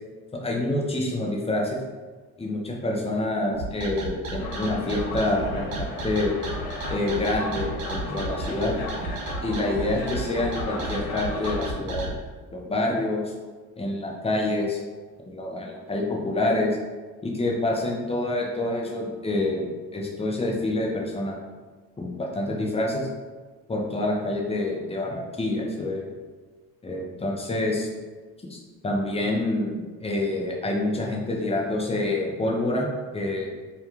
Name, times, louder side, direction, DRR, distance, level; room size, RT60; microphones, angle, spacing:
voice 1, 0.3-1.8 2.4-6.3 6.9-8.7 9.4-12.1 12.5-13.3 13.8-14.8 15.3-16.8 17.2-21.3 22.0-23.1 23.7-26.1 26.8-27.9 28.5-32.9 33.1-33.5, left 2 dB, 15° left, -1 dB, 0.6 m, -27 dB
sound 1, 3.5-12.1, right 2 dB, 85° right, 0.5 m, -33 dB
sound 2, 4.4-11.7, left 3 dB, 65° left, 0.6 m, -35 dB
2.3 x 2.3 x 2.9 m, 1.4 s
supercardioid pair, 70°, 41 cm